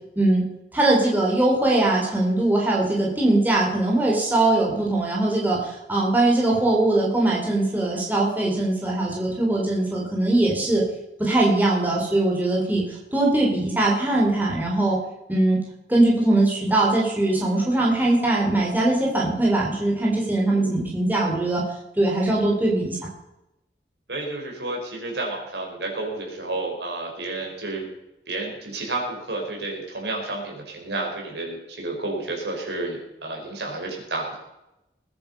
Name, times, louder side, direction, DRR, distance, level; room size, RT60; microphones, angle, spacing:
voice 1, 0.7-10.8 11.2-15.0 15.3-15.6 15.9-21.6 22.0-23.1, right 2 dB, 10° right, -4 dB, 4.2 m, -21 dB
voice 2, 24.1-27.9 28.3-34.4, right 2 dB, 80° right, 0 dB, 5.2 m, -31 dB
20.0 x 10.5 x 5.5 m, 0.90 s
head